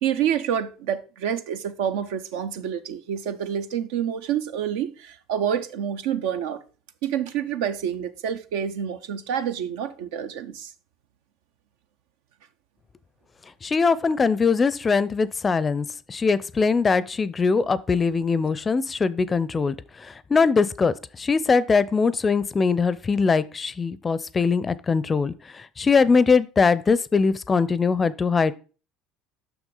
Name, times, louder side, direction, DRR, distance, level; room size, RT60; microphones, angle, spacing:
voice 1, 0.0-6.6 7.0-10.7, right 9 dB, 70° right, 0.6 m, -28 dB
voice 2, 13.6-28.5, left 5 dB, 25° left, 0.5 m, -22 dB
6.2 x 6.1 x 3.8 m
hypercardioid pair, 70°, 0 cm